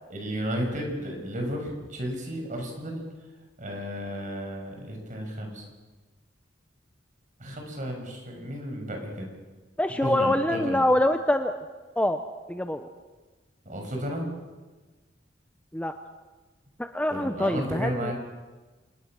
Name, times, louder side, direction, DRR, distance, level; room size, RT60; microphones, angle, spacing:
voice 1, 0.1-3.0 3.6-5.7 7.4-9.3 10.0-10.8 13.6-14.3 17.1-18.1, equal, 45° right, 2 dB, 6.1 m, -33 dB
voice 2, 9.8-11.6 12.0-12.2 12.5-12.9 15.7-15.9 16.8-18.1, left 1 dB, 5° left, 7 dB, 0.8 m, -25 dB
28.0 x 19.0 x 6.3 m, 1.3 s
head